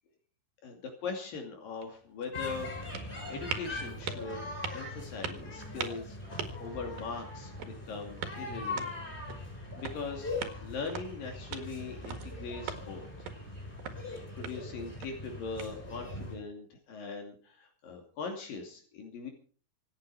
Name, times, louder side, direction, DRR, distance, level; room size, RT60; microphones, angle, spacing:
voice 1, 0.6-2.7 3.3-6.2 6.6-9.0 9.6-10.3 10.6-13.0 14.1-19.3, left 4 dB, 70° left, 3 dB, 4.2 m, -41 dB
sound 1, 1.6-16.2, right 7 dB, 80° right, 3.6 m, -44 dB
sound 2, 2.3-16.4, left 2 dB, 15° left, 7.0 m, -41 dB
26.5 x 8.9 x 4.8 m, 0.41 s
omnidirectional pair, 4.2 m